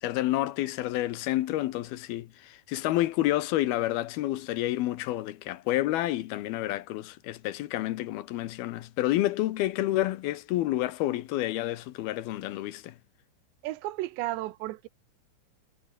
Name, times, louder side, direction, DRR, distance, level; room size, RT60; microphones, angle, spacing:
voice 1, 0.0-13.0, left 15 dB, 70° left, 2.5 m, -29 dB
voice 2, 13.6-14.9, right 16 dB, 80° right, 3.1 m, -33 dB
omnidirectional pair, 5.2 m